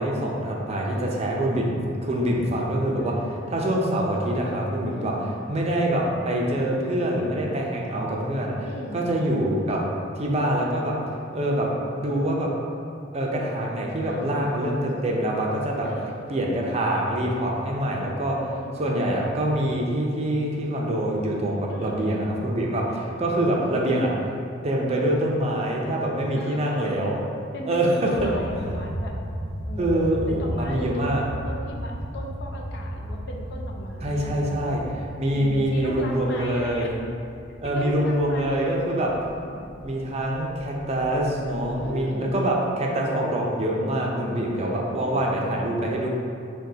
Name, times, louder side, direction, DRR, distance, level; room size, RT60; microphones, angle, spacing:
voice 1, 0.0-3.1 3.5-5.1 5.5-8.7 8.9-9.8 10.2-10.9 11.3-11.7 12.0-12.5 13.1-15.9 16.3-24.1 24.6-27.2 27.7-28.8 29.8-31.2 34.0-34.8 35.2-36.9 37.6-39.1 39.8-46.1, right 1 dB, 35° right, -2 dB, 0.5 m, -25 dB
voice 2, 0.7-1.7 3.0-3.6 4.9-5.5 8.7-9.2 14.0-14.9 15.8-16.6 18.6-19.1 21.7-22.5 22.8-23.7 26.4-27.1 27.5-29.1 29.7-34.8 35.3-36.9 37.7-38.8 39.4-39.7 41.6-42.3 44.1-45.6, left 1 dB, 65° left, 0 dB, 0.5 m, -38 dB
sound 1, 28.1-42.0, equal, 50° left, 0.9 m, -36 dB
6.2 x 2.3 x 2.7 m, 2.5 s
head